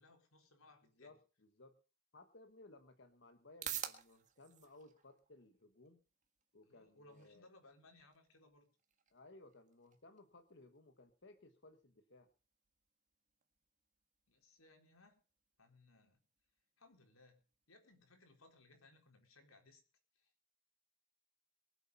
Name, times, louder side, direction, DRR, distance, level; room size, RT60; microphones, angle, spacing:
voice 1, 0.0-1.2 6.6-8.7 14.3-15.1 15.6-16.2 16.8-17.4 17.7-19.8 20.1-20.3, left 2 dB, 85° left, 4 dB, 4.3 m, -65 dB
voice 2, 1.0-1.8 2.1-6.0 6.5-7.5 9.1-12.3, left 2 dB, 55° left, 7 dB, 1.3 m, -61 dB
sound 1, 3.0-19.1, right 10 dB, 35° right, 1.7 m, -55 dB
23.0 x 8.3 x 5.5 m, 0.37 s
head